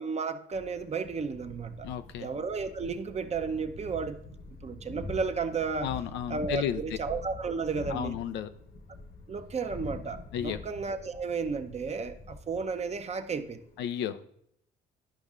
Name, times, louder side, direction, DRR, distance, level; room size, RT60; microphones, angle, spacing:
voice 1, 0.0-1.9 2.2-4.2 4.6-5.9 6.3-8.2 9.3-13.6, right 5 dB, 35° right, 0.7 m, -33 dB
Thunder, 0.5-13.8, left 2 dB, 50° left, 1.1 m, -45 dB
voice 2, 1.8-2.3 5.8-6.8 7.9-8.5 10.3-10.6 13.8-14.2, left 10 dB, 70° left, 0.5 m, -33 dB
11.5 x 5.3 x 2.4 m
supercardioid pair, 65°, 19 cm